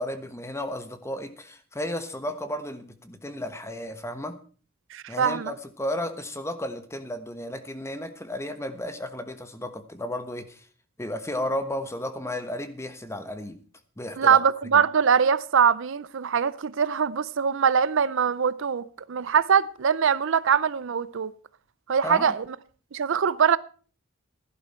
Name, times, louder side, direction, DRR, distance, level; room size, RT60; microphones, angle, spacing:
voice 1, 0.0-4.4 5.1-10.7 11.0-13.6 14.0-14.4 14.7-14.8 22.0-22.3, left 1 dB, 15° left, 1.2 m, -33 dB
voice 2, 4.9-5.5 14.2-21.3 21.9-22.4 22.9-23.6, right 7 dB, 65° right, 0.5 m, -22 dB
16.0 x 11.0 x 4.4 m
head